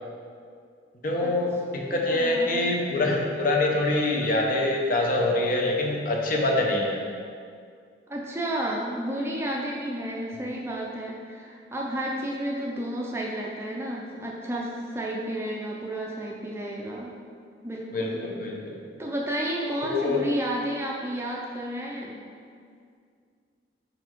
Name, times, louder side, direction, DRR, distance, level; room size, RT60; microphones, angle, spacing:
voice 1, 1.0-7.0 17.9-18.8 19.8-20.2, left 2 dB, 45° left, 0 dB, 0.7 m, -25 dB
voice 2, 1.9-2.8 8.1-17.1 17.6-18.2 19.0-22.2, right 1 dB, 15° right, -3 dB, 0.5 m, -31 dB
5.3 x 4.1 x 4.5 m, 2.2 s
head